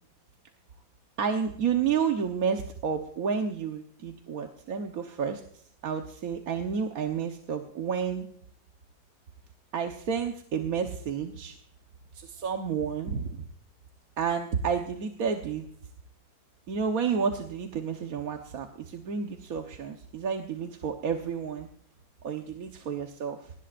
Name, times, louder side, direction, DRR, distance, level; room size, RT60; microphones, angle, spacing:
voice 1, 1.2-5.4 5.8-8.3 9.7-11.5 12.1-13.4 14.2-15.7 16.7-21.7 22.2-23.5, right 6 dB, 55° right, 4 dB, 1.5 m, -30 dB
19.5 x 19.0 x 2.6 m, 0.62 s
omnidirectional pair, 2.0 m